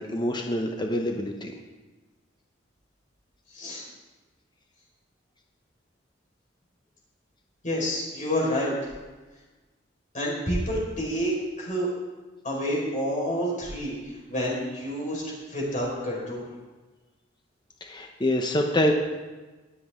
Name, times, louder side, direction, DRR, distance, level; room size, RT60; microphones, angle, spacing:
voice 1, 0.0-1.5 17.8-18.9, left 1 dB, 25° left, 2 dB, 0.9 m, -26 dB
voice 2, 3.5-3.8 7.6-8.9 10.1-11.9 12.4-16.5, equal, 45° left, -4 dB, 5.0 m, -29 dB
23.0 x 7.8 x 3.8 m, 1.2 s
head